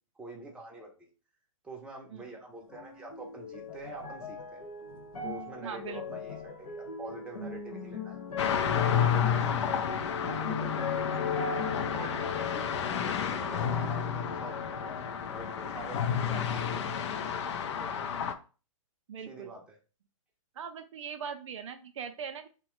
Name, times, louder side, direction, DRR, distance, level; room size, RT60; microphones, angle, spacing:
voice 1, 0.2-1.1 1.6-4.7 5.2-8.2 8.7-12.8 13.2-18.2 19.3-19.8, right 2 dB, 5° right, 0 dB, 0.6 m, -46 dB
sound 1, 2.7-16.2 16.5-17.4 18.1-18.2, left 5 dB, 80° left, 1.0 m, -38 dB
voice 2, 5.6-6.2 19.1-19.5 20.6-22.5, right 7 dB, 60° right, 7 dB, 0.4 m, -40 dB
sound 2, 8.4-18.3, left 7 dB, 55° left, 0.4 m, -31 dB
2.9 x 2.1 x 3.0 m, 0.35 s
hypercardioid pair, 130°, 18 cm